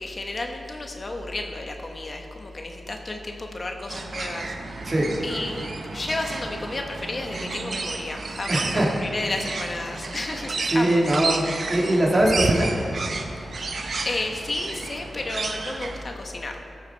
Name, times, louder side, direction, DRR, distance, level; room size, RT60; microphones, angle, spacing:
voice 1, 0.0-4.8 5.2-11.0 13.4-13.7 14.0-16.6, left 2 dB, 40° left, 3 dB, 1.0 m, -32 dB
sound 1, 3.9-16.0, right 3 dB, 60° right, 0.8 m, -31 dB
voice 2, 8.5-8.9 10.7-11.4 11.7-12.7, right 1 dB, 35° right, -2 dB, 2.0 m, -21 dB
17.0 x 6.8 x 4.5 m, 2.6 s
wide cardioid pair, 85°, 0 cm